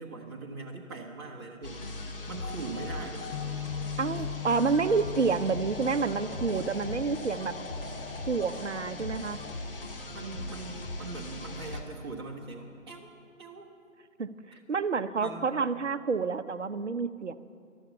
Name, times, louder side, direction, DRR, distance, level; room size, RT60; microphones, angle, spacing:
voice 1, 0.0-3.3 10.1-13.1 13.4-13.7 14.5-14.6 15.2-15.4, right 3 dB, 20° right, -3 dB, 1.3 m, -41 dB
sound 1, 1.6-11.8, left 2 dB, 40° left, 1.4 m, -39 dB
sound 2, 2.4-9.6, left 3 dB, 85° left, 1.3 m, -45 dB
Bass guitar, 3.3-9.6, left 13 dB, 60° left, 0.5 m, -42 dB
voice 2, 4.0-7.5 8.3-9.4 14.2-14.3 14.7-17.4, right 5 dB, 60° right, 12 dB, 0.7 m, -28 dB
13.0 x 11.5 x 6.9 m, 2.3 s
figure-of-eight pair, 150°, 40 cm